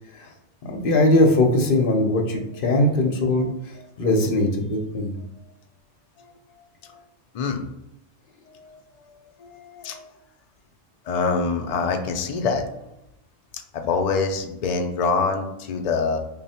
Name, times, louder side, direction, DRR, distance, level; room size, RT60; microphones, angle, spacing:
voice 1, 0.6-3.5 4.0-5.2, left 1 dB, 55° left, 2 dB, 0.8 m, -20 dB
voice 2, 8.5-9.1 9.4-10.1 11.1-12.7 13.7-16.2, left 4 dB, 90° left, 4 dB, 0.3 m, -25 dB
3.2 x 2.4 x 4.1 m, 0.86 s
omnidirectional pair, 1.2 m